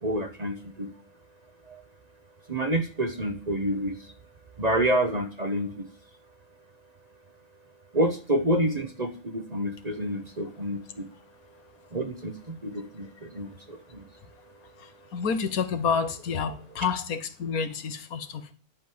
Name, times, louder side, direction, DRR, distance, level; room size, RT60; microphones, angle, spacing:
voice 1, 0.0-0.9 1.7-1.8 2.5-4.1 4.6-5.9 7.9-11.1 11.9-14.1, right 1 dB, 30° right, 1.0 m, -28 dB
voice 2, 14.8-18.5, left 6 dB, 80° left, 1.5 m, -29 dB
11.0 x 5.3 x 7.6 m
omnidirectional pair, 1.5 m